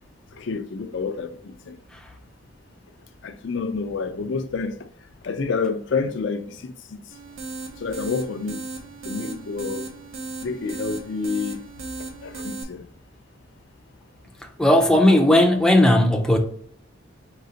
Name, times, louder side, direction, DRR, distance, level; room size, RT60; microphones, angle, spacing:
voice 1, 0.3-1.7 3.2-4.7 5.2-7.0 7.8-8.6 9.0-9.8 10.4-11.7 12.2-12.9, left 4 dB, 65° left, 0.4 m, -28 dB
sound 1, 7.1-12.6, right 3 dB, 80° right, 0.7 m, -36 dB
voice 2, 14.6-16.4, left 1 dB, 5° left, 0.5 m, -16 dB
4.1 x 3.9 x 2.7 m
head